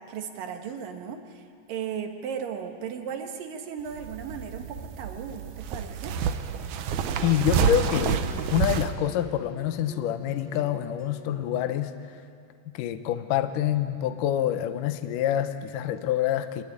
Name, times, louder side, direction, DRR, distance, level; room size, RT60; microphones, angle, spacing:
voice 1, 0.0-6.2, right 7 dB, 60° right, 5 dB, 2.7 m, -36 dB
sound 1, 3.8-8.9, right 7 dB, 85° right, 1.8 m, -28 dB
sound 2, 6.9-11.9, right 1 dB, 25° left, 1.5 m, -47 dB
voice 2, 7.2-11.9 12.7-16.6, left 11 dB, 75° left, 9 dB, 1.9 m, -26 dB
24.5 x 20.5 x 9.8 m, 2.3 s
omnidirectional pair, 5.1 m